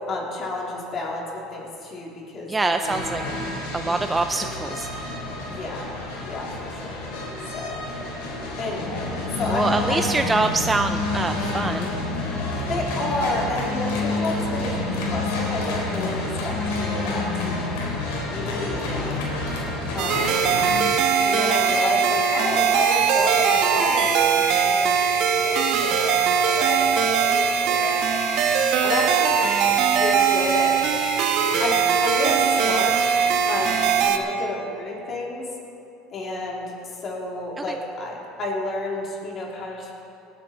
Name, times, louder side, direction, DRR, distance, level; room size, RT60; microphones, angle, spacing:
voice 1, 0.1-3.0 3.9-4.1 5.5-6.0 6.2-7.0 7.5-7.8 8.6-10.0 12.7-17.8 18.3-19.2 19.9-20.5 21.2-28.2 28.8-29.6 29.9-30.9 31.6-33.0 33.5-35.5 36.1-36.7 37.0-39.9, left 2 dB, 40° left, -3 dB, 3.5 m, -30 dB
voice 2, 2.5-3.2 3.7-4.9 9.5-11.9 37.7-37.8, right 3 dB, 15° right, 7 dB, 0.4 m, -24 dB
sound 1, 2.8-20.8, left 2 dB, 85° left, 3.8 m, -28 dB
sound 2, 20.0-34.2, right 7 dB, 65° right, 1.1 m, -21 dB
sound 3, 20.1-34.0, left 1 dB, 55° left, 2.8 m, -31 dB
19.5 x 9.3 x 4.5 m, 2.7 s
supercardioid pair, 110°, 0 cm